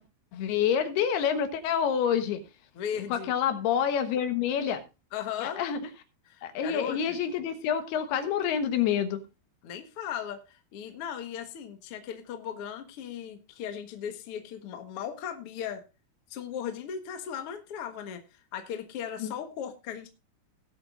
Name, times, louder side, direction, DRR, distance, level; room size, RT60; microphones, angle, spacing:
voice 1, 0.3-2.4 3.1-4.8 5.4-5.8 6.4-9.2 19.2-19.3, left 8 dB, 90° left, 7 dB, 3.3 m, -27 dB
voice 2, 2.7-3.3 5.1-5.6 6.3-7.2 9.6-15.8 16.3-18.2 18.5-20.1, left 8 dB, 55° left, 6 dB, 1.6 m, -37 dB
19.0 x 8.0 x 2.5 m, 0.28 s
omnidirectional pair, 4.4 m